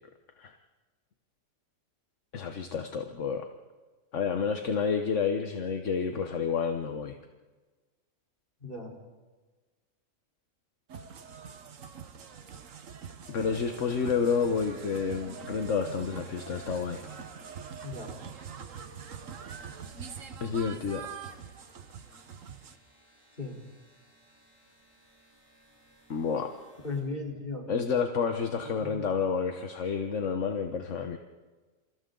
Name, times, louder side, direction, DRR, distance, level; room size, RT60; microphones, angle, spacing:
voice 1, 2.3-3.5 4.1-7.2 13.3-17.2 20.4-21.0 26.1-26.5 27.7-31.2, left 6 dB, 70° left, 5 dB, 1.5 m, -30 dB
voice 2, 8.6-8.9 17.8-18.1 23.4-23.6 26.8-27.7 28.5-29.0, left 3 dB, 45° left, -1 dB, 4.3 m, -36 dB
sound 1, 10.9-22.8, right 6 dB, 85° right, 1.6 m, -44 dB
sound 2, 13.6-27.0, equal, 25° right, 8.1 m, -58 dB
28.5 x 28.5 x 3.9 m, 1.3 s
omnidirectional pair, 1.3 m